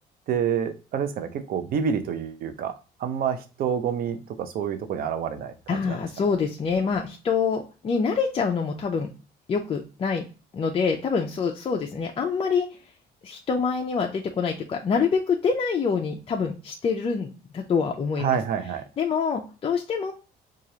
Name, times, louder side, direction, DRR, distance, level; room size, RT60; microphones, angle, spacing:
voice 1, 0.3-2.7 3.0-6.0 18.2-18.8, right 7 dB, 60° right, 9 dB, 0.6 m, -28 dB
voice 2, 5.7-9.1 9.5-10.2 10.5-12.7 13.2-18.4 19.0-20.1, left 5 dB, 35° left, 1 dB, 0.5 m, -26 dB
4.8 x 2.4 x 2.7 m, 0.33 s
cardioid pair, 110°, 17 cm